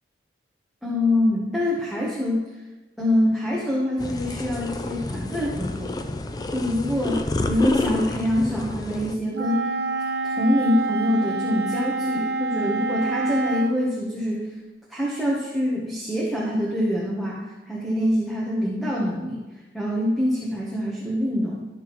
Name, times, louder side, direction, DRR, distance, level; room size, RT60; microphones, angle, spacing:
voice 1, 0.8-2.6 3.0-6.0 6.5-9.6 10.2-14.6 14.9-19.4 19.7-21.7, left 1 dB, ahead, -6 dB, 0.9 m, -25 dB
sound 1, 4.0-9.2, left 2 dB, 20° left, 0.3 m, -29 dB
Wind instrument woodwind instrument, 9.3-13.8, right 3 dB, 60° right, 0.5 m, -27 dB
11.5 x 5.9 x 3.0 m, 1.2 s
head